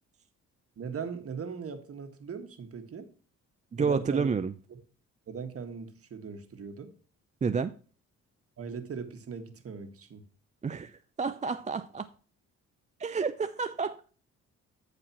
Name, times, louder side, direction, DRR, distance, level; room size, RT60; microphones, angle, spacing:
voice 1, 0.8-3.1 3.8-4.3 4.7-4.8 5.3-6.9 8.6-10.2, right 6 dB, 50° right, 7 dB, 1.8 m, -39 dB
voice 2, 3.7-4.5 7.4-7.7 10.6-12.1 13.0-14.0, right 5 dB, 25° right, 10 dB, 0.5 m, -30 dB
14.5 x 4.9 x 3.0 m, 0.39 s
cardioid pair, 90°, 30 cm